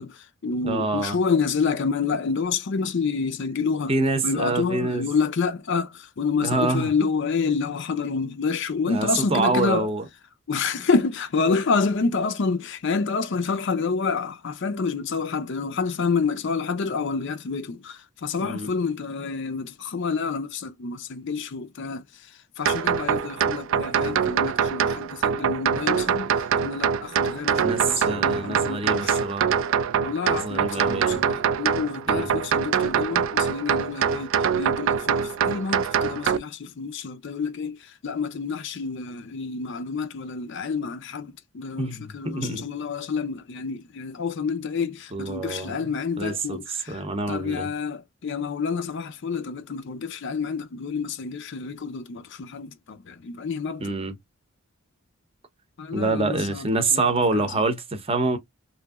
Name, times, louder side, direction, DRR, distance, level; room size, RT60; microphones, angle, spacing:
voice 1, 0.0-3.9 4.2-9.9 10.5-29.2 30.0-53.9 55.8-57.6, left 5 dB, 55° left, 0.5 m, -28 dB
voice 2, 0.6-1.2 3.9-5.1 6.4-6.9 8.9-10.0 18.4-18.7 27.6-29.6 30.3-31.2 32.1-32.3 41.8-42.7 45.1-45.9 46.2-47.7 53.8-54.2 55.9-58.4, right 3 dB, 25° right, 0.7 m, -26 dB
sound 1, 22.6-36.4, right 7 dB, 60° right, 0.3 m, -24 dB
2.9 x 2.7 x 2.3 m
head